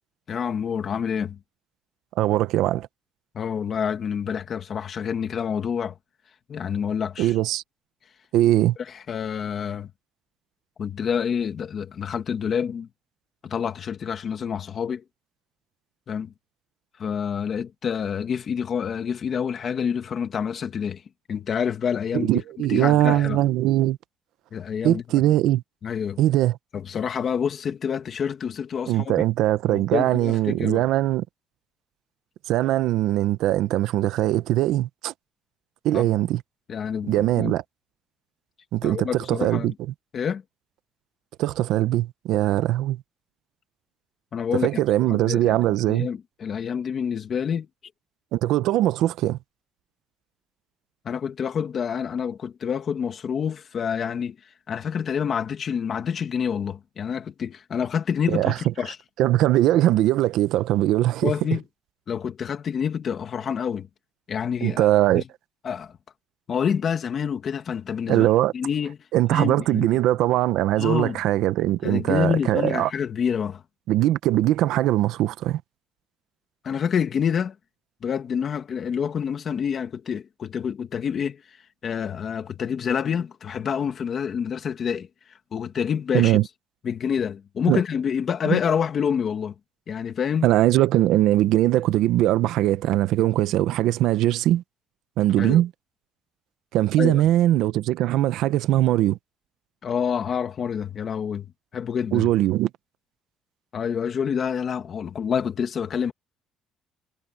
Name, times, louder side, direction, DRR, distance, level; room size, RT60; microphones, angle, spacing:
voice 1, 0.3-1.4 3.3-5.9 6.5-7.3 8.8-9.9 10.8-12.9 13.4-15.0 16.1-16.3 17.0-21.0 21.3-22.4 22.7-23.4 24.5-25.0 25.8-26.2 26.7-29.2 29.7-30.9 35.9-36.1 36.7-37.5 38.8-39.7 40.1-40.4 44.3-44.7 45.1-47.7 51.0-54.4 54.7-59.0 61.2-61.6 62.1-63.9 64.3-64.9 65.1-65.2 65.6-65.9 66.5-68.3 68.5-69.0 69.3-69.9 70.8-71.2 71.8-73.6 76.6-77.5 78.0-81.4 81.8-85.1 85.5-86.4 86.8-89.5 89.9-90.5 95.4-95.6 97.0-97.2 99.8-102.3 103.7-106.1, left 7 dB, 35° left, 2.3 m, -27 dB
voice 2, 2.2-2.9 7.2-7.6 8.3-8.8 22.1-24.0 24.8-25.6 26.2-26.6 28.9-31.2 32.5-35.1 35.8-36.4 37.1-37.6 38.7-39.7 41.4-43.0 44.6-46.1 48.3-49.4 58.3-58.5 59.2-61.3 64.6-65.2 68.1-68.5 69.1-72.9 73.9-75.6 86.1-86.4 87.7-87.8 88.5-88.6 90.4-94.6 95.2-95.7 96.7-99.2 102.1-102.7, right 14 dB, 70° right, 0.8 m, -21 dB
cardioid pair, 180°, 0 cm